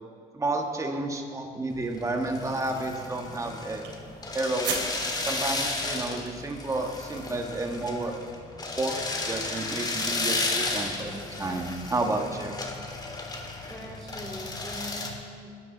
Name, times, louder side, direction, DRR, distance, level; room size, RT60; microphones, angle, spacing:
voice 1, 0.3-3.8 4.3-4.8 5.2-8.1 8.8-12.6, right 2 dB, 20° right, 3 dB, 1.5 m, -31 dB
sound 1, 1.7-15.1, left 2 dB, 25° left, 2.2 m, -33 dB
sound 2, 2.9-6.4, right 6 dB, 85° right, 3.5 m, -39 dB
voice 2, 12.9-15.6, equal, 5° left, -8 dB, 3.7 m, -43 dB
21.0 x 12.0 x 4.0 m, 2.2 s
cardioid pair, 110°, 17 cm